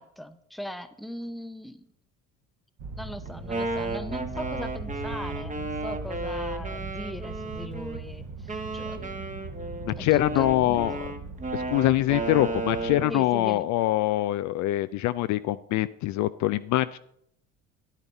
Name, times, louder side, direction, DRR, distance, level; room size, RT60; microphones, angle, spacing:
voice 1, 0.0-1.9 2.9-9.3 10.0-10.8 13.1-13.7, equal, ahead, 11 dB, 0.7 m, -40 dB
sound 1, 2.8-13.0, right 3 dB, 50° right, 1.7 m, -39 dB
Wind instrument woodwind instrument, 3.3-8.0 8.5-13.2, right 2 dB, 20° right, 1.2 m, -34 dB
voice 2, 9.8-11.0 11.5-17.0, left 16 dB, 50° left, 14 dB, 0.4 m, -24 dB
10.5 x 9.8 x 4.1 m, 0.71 s
hypercardioid pair, 70°, 38 cm